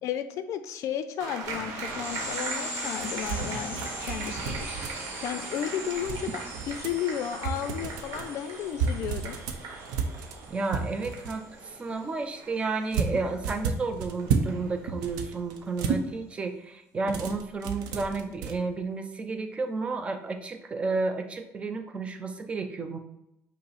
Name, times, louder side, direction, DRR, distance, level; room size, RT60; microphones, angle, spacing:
voice 1, 0.0-9.4, left 9 dB, 55° left, 10 dB, 0.4 m, -34 dB
sound 1, 1.2-16.1, right 4 dB, 65° right, 1.0 m, -41 dB
sound 2, 1.4-11.6, right 1 dB, 35° right, 1.5 m, -40 dB
sound 3, 3.0-5.2 6.0-7.0 7.4-8.3 8.7-11.4 12.9-14.6 14.9-16.0 17.0-18.5, right 5 dB, 85° right, 0.6 m, -32 dB
voice 2, 10.5-23.0, right 3 dB, 20° right, 6 dB, 0.4 m, -32 dB
5.4 x 2.0 x 4.0 m, 0.86 s
cardioid pair, 165°, 6 cm